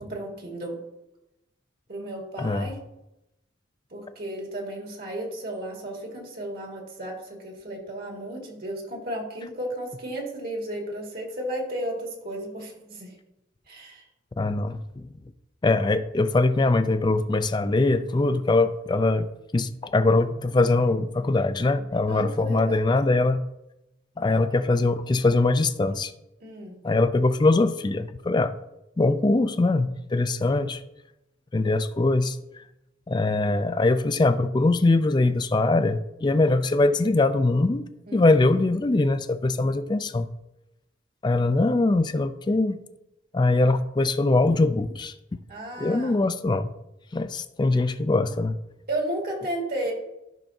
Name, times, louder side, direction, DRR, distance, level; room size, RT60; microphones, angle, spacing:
voice 1, 0.1-0.8 1.9-2.8 3.9-13.1 13.7-14.0 22.1-22.8 26.4-26.8 38.1-38.5 45.5-46.2 48.9-49.9, right 1 dB, 50° right, 0 dB, 1.8 m, -33 dB
voice 2, 2.4-2.7 14.4-15.1 15.6-23.4 24.2-26.1 26.8-28.5 29.0-30.8 31.5-32.6 33.1-40.3 41.2-42.8 43.3-45.1 45.8-46.7 47.1-48.6, left 2 dB, 20° left, 11 dB, 0.3 m, -22 dB
12.0 x 5.9 x 2.6 m, 0.91 s
head